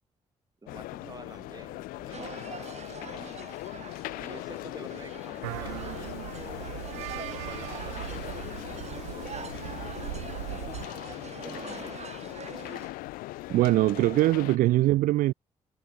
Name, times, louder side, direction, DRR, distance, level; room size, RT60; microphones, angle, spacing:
voice 1, 0.6-3.5 4.2-8.5 9.2-9.5 10.5-12.0, right 3 dB, 25° right, 4.0 m, -49 dB
sound 1, 0.7-14.6, left 19 dB, 75° left, 0.5 m, -40 dB
sound 2, 2.1-12.9, right 6 dB, 50° right, 3.2 m, -45 dB
sound 3, 5.4-10.9, right 27 dB, 85° right, 0.9 m, -39 dB
voice 2, 13.5-15.3, right 16 dB, 70° right, 0.4 m, -22 dB
hypercardioid pair, 45°, 15 cm